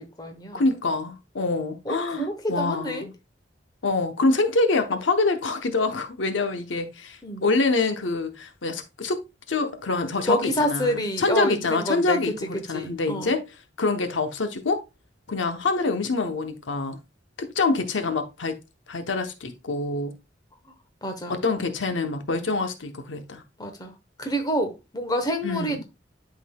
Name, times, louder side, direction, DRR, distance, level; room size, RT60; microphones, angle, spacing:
voice 1, 0.0-0.6 1.8-3.1 7.2-7.5 10.3-12.3 12.7-13.3 21.0-21.4 23.6-23.9 24.2-25.8, equal, 20° left, 1.0 m, -28 dB
voice 2, 0.5-3.1 3.8-9.2 9.5-13.4 13.8-14.8 15.3-17.0 17.4-18.6 18.9-20.1 21.3-23.4 25.4-25.8, left 3 dB, 85° left, 0.9 m, -25 dB
11.5 x 3.8 x 2.2 m
head